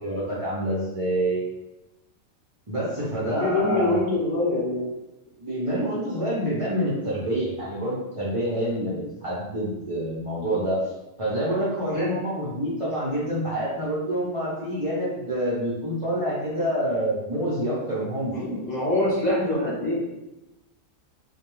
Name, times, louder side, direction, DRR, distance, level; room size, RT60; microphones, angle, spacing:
voice 1, 0.0-1.5 2.7-4.0 5.4-10.8 11.2-18.6, right 1 dB, 45° right, -9 dB, 0.4 m, -27 dB
voice 2, 3.2-4.9 11.9-12.2 18.3-20.0, left 2 dB, 35° left, -8 dB, 0.9 m, -24 dB
2.2 x 2.2 x 3.0 m, 0.96 s
omnidirectional pair, 1.4 m